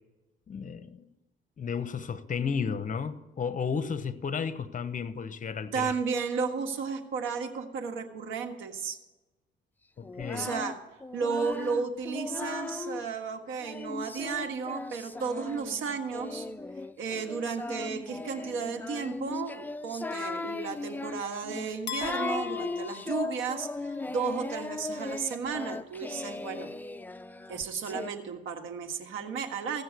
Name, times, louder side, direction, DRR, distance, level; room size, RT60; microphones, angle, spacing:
voice 1, 0.5-1.0 1.6-5.9 10.0-10.5, left 6 dB, 40° left, 0.9 m, -33 dB
voice 2, 5.7-9.0 10.3-10.8 11.1-16.5 17.0-26.7 27.5-29.8, right 5 dB, 85° right, 1.5 m, -33 dB
Singing, 10.0-13.1 13.6-28.1, left 3 dB, 10° left, 0.4 m, -37 dB
sound 1, 21.9-24.0, left 10 dB, 60° left, 0.6 m, -40 dB
16.0 x 6.7 x 8.2 m
cardioid pair, 90°, 20 cm